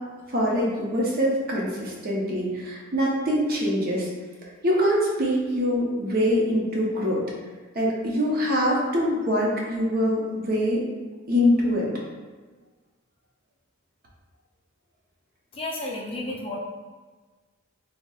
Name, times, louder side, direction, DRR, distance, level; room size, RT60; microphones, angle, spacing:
voice 1, 0.3-4.1 4.6-7.2 7.7-10.8 11.3-11.9, equal, 45° right, -3 dB, 0.6 m, -24 dB
voice 2, 15.6-16.6, left 2 dB, 25° left, -4 dB, 0.4 m, -32 dB
4.1 x 2.0 x 2.3 m, 1.3 s
head